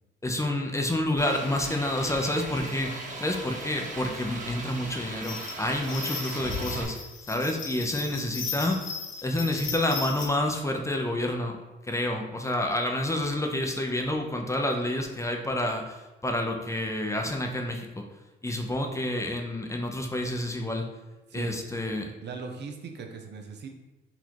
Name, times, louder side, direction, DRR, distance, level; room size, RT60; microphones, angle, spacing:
voice 1, 0.2-7.0 7.3-8.9 9.2-11.6 11.8-18.0 18.4-20.9 21.3-22.1, left 1 dB, 15° left, 3 dB, 0.6 m, -29 dB
sound 1, 1.2-6.8, right 1 dB, 40° right, 1.1 m, -38 dB
sound 2, 5.2-10.3, left 5 dB, 75° left, 0.9 m, -37 dB
voice 2, 6.2-6.8 21.3-21.6 22.2-23.7, right 5 dB, 60° right, 4 dB, 0.7 m, -40 dB
4.2 x 2.7 x 4.5 m, 1.1 s
cardioid pair, 90°, 20 cm